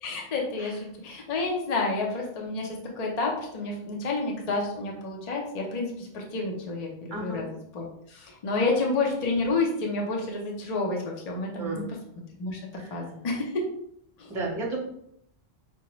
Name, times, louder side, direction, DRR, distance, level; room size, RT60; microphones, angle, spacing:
voice 1, 0.0-7.5 7.7-11.8 12.4-12.6 12.9-13.5 14.2-14.3, left 3 dB, 40° left, -1 dB, 0.7 m, -29 dB
voice 2, 7.1-7.5 8.6-8.7 11.5-11.9 12.8-13.1 14.3-14.8, right 2 dB, 25° right, -2 dB, 0.9 m, -34 dB
4.8 x 2.2 x 3.0 m, 0.71 s
omnidirectional pair, 1.2 m